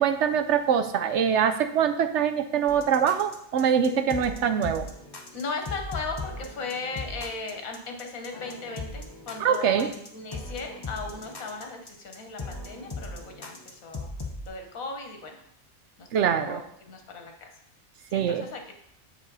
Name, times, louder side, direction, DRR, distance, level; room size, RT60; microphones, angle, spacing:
voice 1, 0.0-4.9 9.4-9.9 16.1-16.6 18.1-18.4, right 8 dB, 65° right, 9 dB, 0.8 m, -24 dB
sound 1, 2.7-14.5, left 2 dB, 20° left, 0.7 m, -39 dB
voice 2, 5.3-14.1 14.4-15.4 16.0-17.5 18.1-18.7, left 3 dB, 75° left, 3 dB, 1.5 m, -37 dB
8.0 x 4.9 x 4.0 m, 0.72 s
omnidirectional pair, 1.5 m